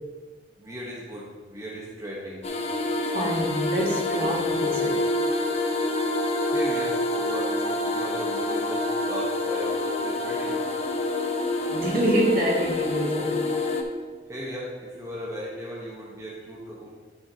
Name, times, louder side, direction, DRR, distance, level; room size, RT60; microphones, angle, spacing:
voice 1, 0.6-2.4 6.5-10.6 14.3-16.9, equal, 20° right, -5 dB, 1.1 m, -36 dB
sound 1, 2.4-13.8, left 2 dB, 35° left, 0.8 m, -27 dB
voice 2, 3.1-5.0 11.7-13.4, right 1 dB, 55° right, -3 dB, 2.1 m, -26 dB
11.5 x 6.4 x 2.8 m, 1.4 s
head